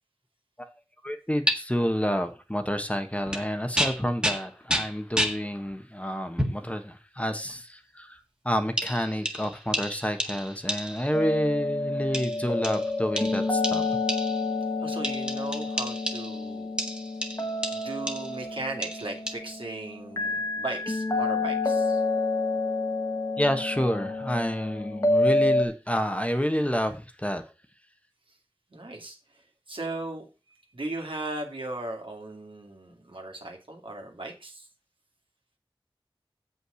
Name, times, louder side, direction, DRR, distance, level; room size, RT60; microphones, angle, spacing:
voice 1, 1.0-14.0 23.4-27.5, equal, 15° left, 7 dB, 1.3 m, -29 dB
sound 1, 1.5-1.6 3.3-3.5 3.8-5.4 6.4-6.7 7.5-7.6 8.8-11.2 12.1-14.5 15.0-16.4 16.8-18.4 18.8-19.3, equal, 10° right, 1.7 m, -31 dB
sound 2, 11.1-25.7, left 2 dB, 35° left, 1.7 m, -28 dB
voice 2, 14.8-16.7 17.7-22.0 28.7-29.4 29.7-30.3 30.7-34.7, right 2 dB, 70° right, 2 dB, 2.4 m, -37 dB
7.6 x 5.6 x 6.3 m, 0.30 s
wide cardioid pair, 45°, 9 cm